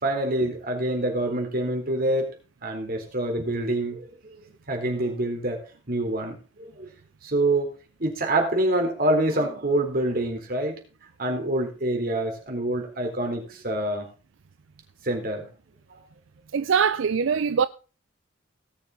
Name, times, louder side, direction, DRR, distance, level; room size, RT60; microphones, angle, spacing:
voice 1, 0.0-2.3 2.6-4.1 4.7-5.6 5.9-6.9 7.2-7.7 8.0-10.8 11.2-14.1 15.0-15.4 15.9-16.0, right 1 dB, 50° right, 4.0 m, -26 dB
voice 2, 16.5-17.7, right 6 dB, 85° right, 0.5 m, -22 dB
18.0 x 6.9 x 3.9 m
head